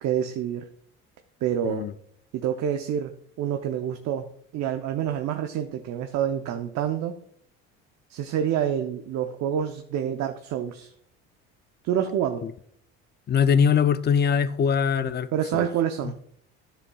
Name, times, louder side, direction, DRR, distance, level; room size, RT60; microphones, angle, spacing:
voice 1, 0.0-0.7 1.4-1.9 2.3-3.1 3.4-4.3 4.5-7.2 8.1-10.9 11.8-12.5 15.3-16.2, right 9 dB, 65° right, 0.8 m, -27 dB
voice 2, 13.3-15.7, left 7 dB, 35° left, 0.5 m, -22 dB
10.5 x 6.8 x 2.3 m
supercardioid pair, 90°, 30 cm